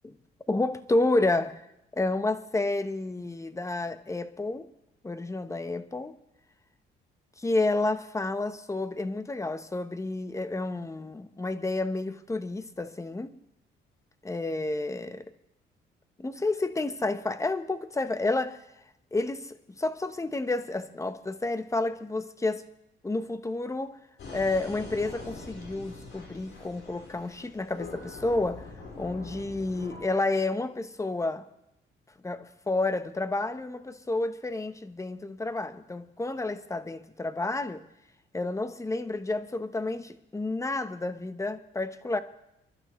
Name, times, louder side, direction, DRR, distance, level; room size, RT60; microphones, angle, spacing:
voice 1, 0.5-1.6 1.9-4.7 5.0-6.1 7.4-13.3 14.2-15.3 16.2-18.6 19.1-22.6 23.0-24.0 24.3-28.7 29.0-31.4 32.2-37.8 38.3-42.2, left 2 dB, 15° left, 0.9 m, -30 dB
sound 1, 24.2-30.0, left 3 dB, 70° left, 4.6 m, -43 dB
29.5 x 11.5 x 3.1 m
cardioid pair, 90°, 20 cm